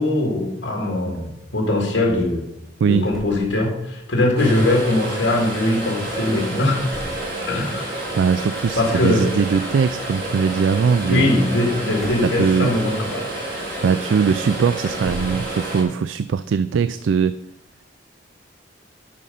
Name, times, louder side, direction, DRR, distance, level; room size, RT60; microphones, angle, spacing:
voice 1, 0.0-2.5 2.8-6.9 7.4-8.0 8.8-9.3 11.0-13.2, left 1 dB, 80° left, -1 dB, 2.2 m, -21 dB
sound 1, 3.0-4.1 4.3-4.4 4.6-4.8 6.6-7.3 8.6-9.0 11.9-13.1 14.0-14.1 14.8-15.5, equal, ahead, 2.0 m, -38 dB
sound 2, 4.4-15.8, right 1 dB, 60° right, 4.2 m, -29 dB
voice 2, 8.2-11.3 12.2-12.7 13.8-17.3, right 6 dB, 80° right, 14 dB, 0.3 m, -20 dB
11.5 x 5.7 x 5.4 m, 0.88 s
head